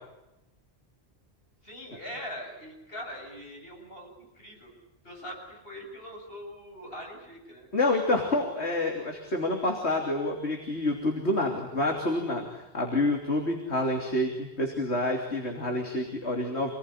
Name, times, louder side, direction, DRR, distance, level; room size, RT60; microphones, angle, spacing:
voice 1, 1.6-4.7 5.0-7.7, equal, 60° left, 1 dB, 8.4 m, -42 dB
voice 2, 7.7-16.7, left 2 dB, 75° left, 2 dB, 3.5 m, -28 dB
27.5 x 20.0 x 9.9 m, 0.92 s
omnidirectional pair, 1.1 m